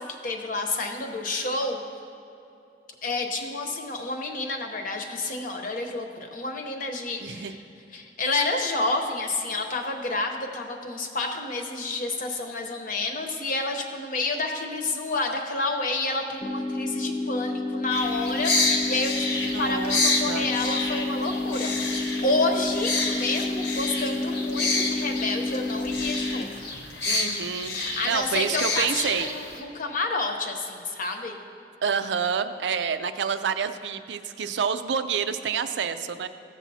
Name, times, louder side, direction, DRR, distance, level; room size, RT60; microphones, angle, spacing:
voice 1, 0.0-1.8 3.0-7.6 7.9-26.5 27.7-31.4, left 2 dB, 50° left, 4 dB, 0.9 m, -29 dB
voice 2, 7.2-7.5 19.4-20.4 27.0-29.3 31.8-36.3, right 6 dB, 80° right, 11 dB, 0.4 m, -28 dB
sound 1, 16.4-26.4, left 2 dB, 30° left, 0.4 m, -30 dB
sound 2, 17.9-29.6, left 3 dB, 75° left, 1.1 m, -29 dB
15.0 x 7.2 x 2.8 m, 2.8 s
head